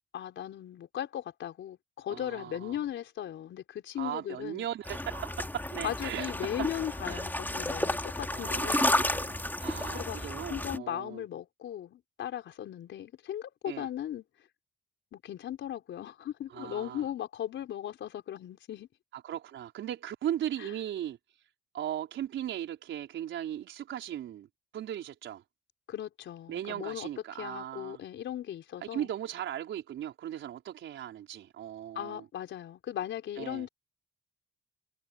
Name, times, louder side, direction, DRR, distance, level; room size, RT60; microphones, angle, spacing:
voice 1, 0.1-4.6 5.8-8.9 9.9-14.2 15.1-18.9 20.6-20.7 25.9-27.1 27.4-29.1 31.9-33.7, left 11 dB, 70° left, 4.8 m, -37 dB
voice 2, 2.1-2.8 4.0-6.3 7.0-7.2 8.3-11.2 13.7-13.9 16.5-17.1 19.1-21.2 21.7-24.5 24.7-25.4 26.5-28.0 28.9-32.2 33.4-33.7, right 11 dB, 75° right, 4.8 m, -38 dB
sound 1, 4.9-10.8, left 1 dB, 10° left, 2.7 m, -32 dB
cardioid pair, 90°, 20 cm